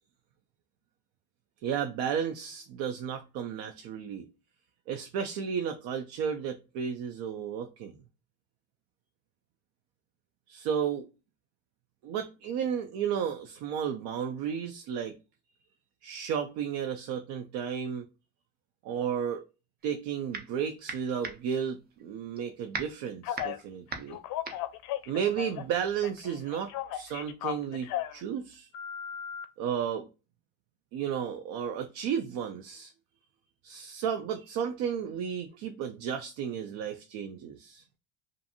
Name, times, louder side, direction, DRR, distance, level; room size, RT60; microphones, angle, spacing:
voice 1, 1.6-4.3 4.9-8.0 10.5-11.1 12.0-15.2 16.0-18.1 18.8-19.4 19.8-24.2 25.1-28.7 29.6-30.1 30.9-32.9 33.6-37.8, right 8 dB, 75° right, 0.5 m, -33 dB
sound 1, 19.8-20.6 20.9-25.9, right 4 dB, 25° right, 0.4 m, -40 dB
Telephone, 23.2-23.6 24.1-25.7 26.0-28.2 28.7-29.4, left 11 dB, 60° left, 0.5 m, -36 dB
2.5 x 2.5 x 2.6 m
cardioid pair, 140°, 40 cm